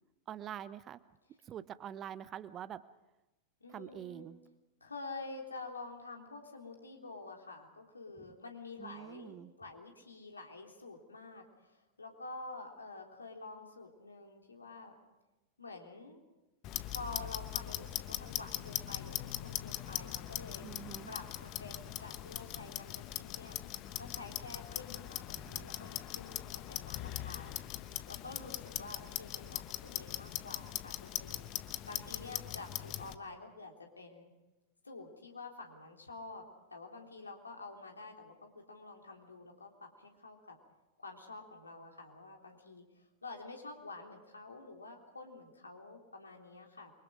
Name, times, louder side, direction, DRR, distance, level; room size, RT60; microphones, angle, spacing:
voice 1, 0.3-1.0 1.5-2.8 3.7-4.4 8.8-9.5 20.6-21.1 25.4-25.7, right 10 dB, 30° right, 16 dB, 0.9 m, -45 dB
voice 2, 3.6-4.3 4.8-15.0 15.6-16.2 16.9-20.7 21.1-23.6 24.0-31.5 31.9-34.3 34.8-36.4 36.7-40.6 41.0-46.9, left 3 dB, 80° left, 2 dB, 3.6 m, -48 dB
Clock, 16.6-33.1, left 14 dB, 40° left, 1.0 m, -41 dB
29.0 x 24.0 x 5.1 m, 1.0 s
figure-of-eight pair, 90°, 0 cm